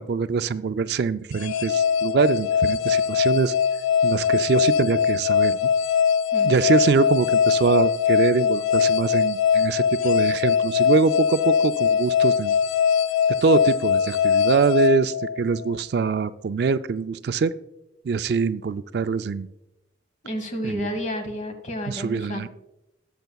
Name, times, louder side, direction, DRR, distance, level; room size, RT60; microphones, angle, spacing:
voice 1, 0.0-3.5 4.0-5.7 6.4-12.5 13.4-17.5 18.0-19.5 20.6-20.9 21.9-22.5, right 5 dB, 60° right, 12 dB, 0.3 m, -23 dB
sound 1, 1.3-15.7, left 7 dB, 85° left, 0.3 m, -21 dB
voice 2, 20.2-22.5, equal, 40° left, 6 dB, 1.3 m, -31 dB
19.5 x 6.8 x 2.3 m, 0.91 s
head